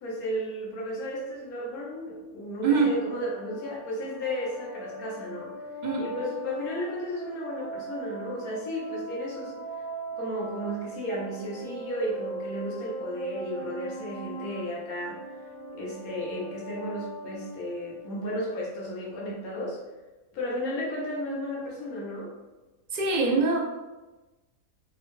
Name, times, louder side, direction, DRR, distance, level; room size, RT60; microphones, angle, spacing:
voice 1, 0.0-5.5 6.0-9.6 10.2-15.5 15.7-19.8 20.3-22.3, equal, 85° left, -4 dB, 1.3 m, -34 dB
voice 2, 2.6-3.0 5.8-6.1 22.9-23.6, right 4 dB, 65° right, -1 dB, 0.4 m, -23 dB
sound 1, 2.9-18.3, right 2 dB, 60° left, 1.1 m, -40 dB
4.4 x 2.1 x 3.0 m, 1.1 s
omnidirectional pair, 1.5 m